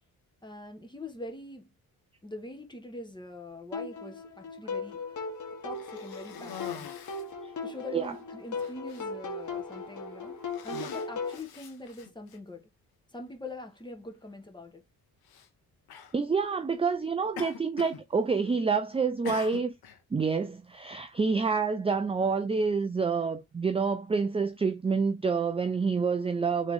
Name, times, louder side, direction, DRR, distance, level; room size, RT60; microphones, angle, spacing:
voice 1, 0.4-1.7 2.2-5.0 5.6-6.9 7.6-12.6 13.1-14.8, left 2 dB, 10° left, 1.4 m, -43 dB
sound 1, 3.7-11.4, left 4 dB, 55° left, 1.3 m, -38 dB
Cough, 5.7-7.4 8.1-8.2 8.6-9.0 9.8-10.0 10.4-12.4 13.3-13.4 15.2-15.5 15.9-16.2 17.4-18.0 18.3-18.7 19.3-20.0, left 7 dB, 90° left, 0.9 m, -44 dB
voice 2, 16.1-19.7 20.1-26.7, right 5 dB, 15° right, 0.4 m, -28 dB
3.7 x 3.1 x 3.7 m
cardioid pair, 80°, 36 cm